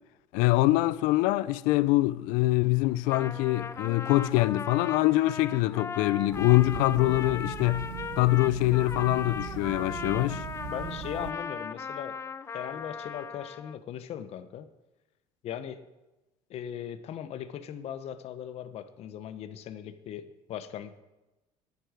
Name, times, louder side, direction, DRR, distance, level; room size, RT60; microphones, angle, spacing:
voice 1, 0.3-7.9 8.2-10.4, left 18 dB, 85° left, 0.4 m, -24 dB
Trumpet, 2.9-13.8, left 5 dB, 20° left, 0.4 m, -38 dB
sound 1, 6.3-11.3, right 12 dB, 90° right, 0.6 m, -40 dB
voice 2, 10.7-12.2 12.5-14.7 15.4-15.8 16.5-21.0, left 9 dB, 55° left, 0.8 m, -39 dB
9.6 x 9.4 x 5.0 m
cardioid pair, 125°, 13 cm